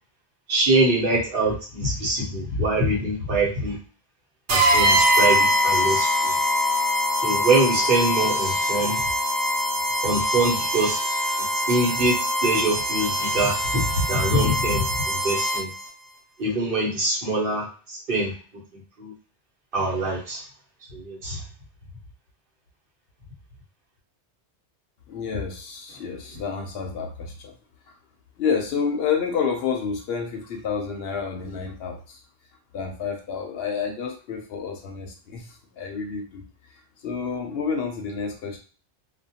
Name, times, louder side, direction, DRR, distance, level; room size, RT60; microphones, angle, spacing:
voice 1, 0.5-3.8 4.5-6.3 7.2-9.0 10.0-11.0 11.7-12.2 12.4-15.7 16.4-18.3 19.0-19.1 19.7-20.4 20.9-21.4, right 2 dB, 55° right, -3 dB, 1.1 m, -24 dB
sound 1, 4.5-15.9, equal, 85° right, 1.0 m, -23 dB
voice 2, 25.1-27.5 28.4-32.2 32.7-36.4 37.0-38.6, left 6 dB, 70° left, 4 dB, 0.8 m, -29 dB
2.4 x 2.2 x 2.7 m, 0.38 s
omnidirectional pair, 1.1 m